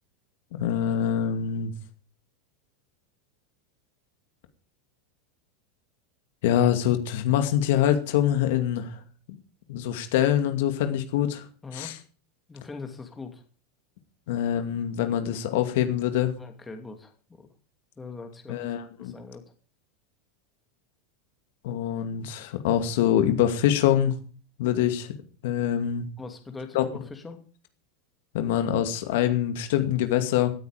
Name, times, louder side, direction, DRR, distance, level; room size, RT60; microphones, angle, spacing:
voice 1, 0.5-1.7 6.4-9.0 9.3-9.4 9.7-11.4 11.7-12.0 14.3-16.3 18.5-19.2 21.6-24.2 24.6-25.1 25.4-26.1 26.7-26.8 28.3-30.5, left 10 dB, 70° left, 8 dB, 2.4 m, -24 dB
voice 2, 11.6-11.9 12.5-13.4 16.4-17.5 18.0-18.6 19.0-19.4 26.2-27.4, left 4 dB, 15° left, 6 dB, 2.6 m, -41 dB
17.0 x 9.7 x 5.0 m, 0.39 s
supercardioid pair, 130°, 0 cm